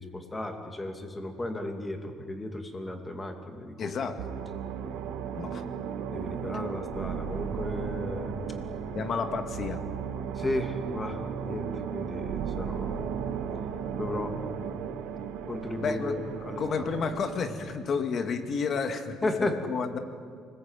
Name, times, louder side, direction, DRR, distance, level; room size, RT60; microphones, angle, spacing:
voice 1, 0.0-4.0 6.1-8.3 10.4-13.1 14.0-14.3 15.5-16.9 19.2-19.6, left 2 dB, 15° left, 5 dB, 2.6 m, -34 dB
voice 2, 3.8-4.2 5.3-5.6 8.9-9.8 15.8-20.0, left 5 dB, 40° left, 7 dB, 2.1 m, -31 dB
sound 1, 4.2-17.5, right 7 dB, 85° right, 2.1 m, -35 dB
29.0 x 21.5 x 9.1 m, 2.2 s
cardioid pair, 160°, 0 cm